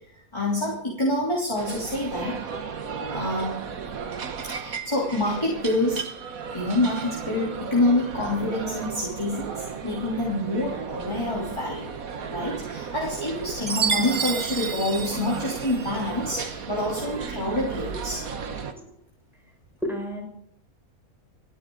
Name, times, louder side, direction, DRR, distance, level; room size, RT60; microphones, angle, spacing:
voice 1, 0.3-2.4 3.1-3.6 4.6-6.0 6.5-12.0 12.3-18.2, left 1 dB, 20° left, -6 dB, 3.4 m, -27 dB
sound 1, 1.6-18.7, right 6 dB, 75° right, 1.6 m, -35 dB
Chime, 13.7-16.0, right 6 dB, 55° right, 1.5 m, -29 dB
voice 2, 19.8-20.3, equal, ahead, -2 dB, 5.9 m, -31 dB
29.5 x 10.5 x 3.9 m, 0.72 s
omnidirectional pair, 1.5 m